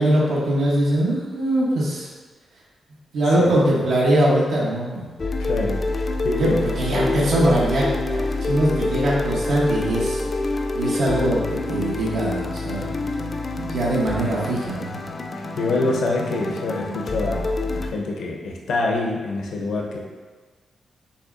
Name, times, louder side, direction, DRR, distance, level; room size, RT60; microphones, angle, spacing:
voice 1, 0.0-2.1 3.1-5.1 6.3-7.9 8.4-11.4 11.7-12.9 13.6-15.0, right 1 dB, 85° right, -5 dB, 0.9 m, -21 dB
sound 1, 5.2-17.9, left 2 dB, 35° left, 0.3 m, -26 dB
voice 2, 5.4-6.6 15.3-20.0, left 2 dB, 85° left, 0 dB, 0.7 m, -26 dB
6.7 x 3.1 x 2.5 m, 1.3 s
wide cardioid pair, 130°, 0 cm